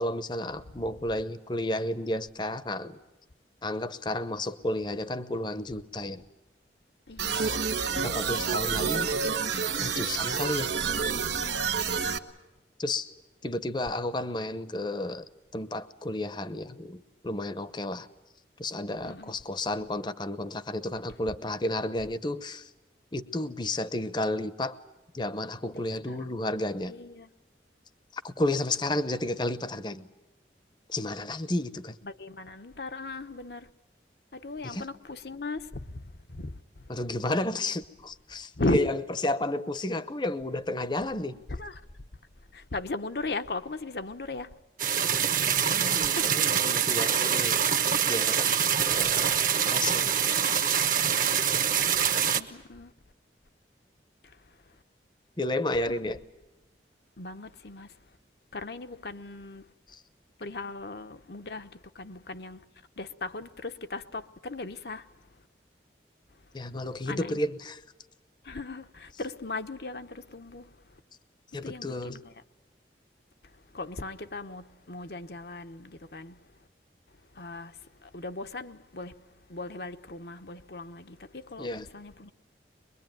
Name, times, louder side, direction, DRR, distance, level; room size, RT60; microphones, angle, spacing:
voice 1, 0.0-3.0 3.6-6.2 7.3-7.6 7.9-9.1 9.7-10.7 12.8-13.1 13.4-15.2 15.5-18.1 18.6-22.7 23.1-24.8 25.1-26.9 28.1-30.1 30.9-32.0 34.6-34.9 36.9-41.4 45.6-47.8 48.0-48.5 48.9-50.1 50.5-50.8 55.4-56.2 59.9-60.0 66.5-67.8 71.5-72.2 81.6-81.8, left 1 dB, 25° left, 0.8 m, -32 dB
voice 2, 7.1-7.5 10.9-11.5 11.8-12.2 19.0-19.4 25.7-26.4 26.9-27.3 32.0-33.7 34.3-36.9 38.5-38.9 41.5-42.0 42.5-44.6 46.0-46.4 52.2-52.9 54.2-54.8 55.8-56.0 57.2-58.0 58.5-59.7 60.4-62.6 63.0-65.4 66.3-66.6 67.0-67.4 68.4-71.0 71.6-72.3 73.4-76.7 77.1-82.3, left 2 dB, 65° left, 1.0 m, -38 dB
sound 1, 7.2-12.2, right 6 dB, 85° right, 1.3 m, -29 dB
sound 2, 44.8-52.4, right 8 dB, 50° right, 1.2 m, -25 dB
23.5 x 22.5 x 9.2 m
head